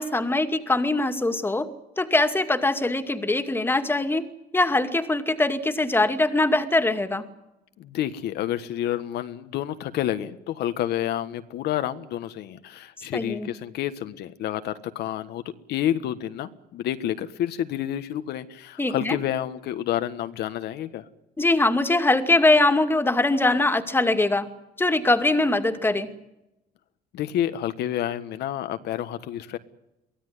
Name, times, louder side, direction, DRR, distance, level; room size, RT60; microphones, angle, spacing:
voice 1, 0.0-1.7 2.0-4.3 4.5-7.2 13.1-13.5 18.8-19.2 21.4-24.5 24.8-26.1, left 2 dB, 15° left, 8 dB, 2.3 m, -22 dB
voice 2, 7.8-15.4 15.7-21.0 27.1-29.6, left 11 dB, 75° left, 10 dB, 1.4 m, -29 dB
23.5 x 16.0 x 9.6 m, 0.90 s
cardioid pair, 110°, 17 cm